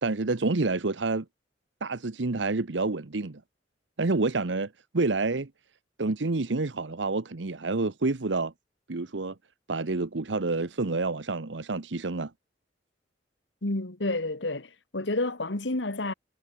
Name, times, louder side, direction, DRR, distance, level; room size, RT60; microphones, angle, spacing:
voice 1, 0.0-1.2 1.8-3.4 4.0-5.5 6.0-8.5 8.9-9.3 9.7-12.3, right 3 dB, 85° right, 1.0 m, -28 dB
voice 2, 13.6-16.1, left 2 dB, 80° left, 2.1 m, -30 dB
head